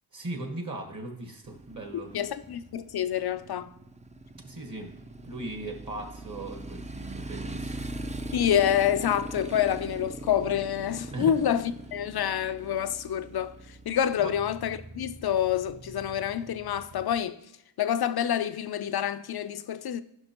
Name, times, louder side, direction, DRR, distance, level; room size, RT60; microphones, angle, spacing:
voice 1, 0.1-2.2 4.3-4.9 5.2-7.8 11.1-11.3 14.2-14.3, right 2 dB, 40° right, 1.5 m, -38 dB
Motorcycle, 1.4-17.2, right 1 dB, 15° right, 0.5 m, -41 dB
voice 2, 1.9-3.7 8.3-17.4 17.8-20.0, left 9 dB, 55° left, 0.5 m, -27 dB
12.5 x 5.8 x 2.9 m
cardioid pair, 70°, 47 cm